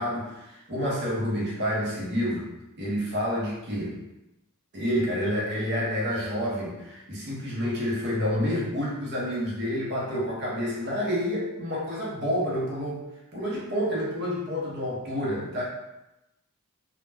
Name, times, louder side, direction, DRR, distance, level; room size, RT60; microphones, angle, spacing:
voice 1, 0.0-2.5 2.8-4.0 4.7-13.0 13.3-15.6, equal, 50° right, -5 dB, 0.7 m, -29 dB
2.1 x 2.1 x 3.3 m, 0.93 s
head